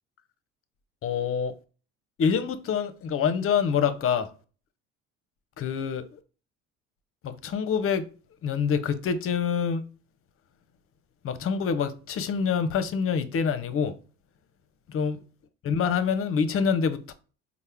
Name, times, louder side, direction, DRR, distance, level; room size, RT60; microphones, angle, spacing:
voice 1, 1.0-1.5 2.2-4.3 5.6-6.2 7.2-8.1 8.4-9.8 11.2-14.0 14.9-15.2 15.6-17.1, left 6 dB, 40° left, 0.6 m, -26 dB
4.2 x 2.1 x 3.4 m
hypercardioid pair, 65°, 35 cm